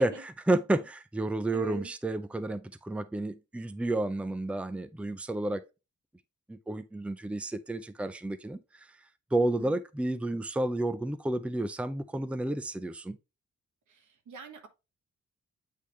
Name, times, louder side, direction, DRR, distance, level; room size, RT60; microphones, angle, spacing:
voice 1, 0.0-5.6 6.5-8.9 9.3-13.2, right 2 dB, 5° right, 0.5 m, -31 dB
voice 2, 1.5-1.9 9.4-9.8 13.9-14.0 14.3-14.7, right 3 dB, 90° right, 1.4 m, -43 dB
8.4 x 3.6 x 3.1 m
wide cardioid pair, 120°, 29 cm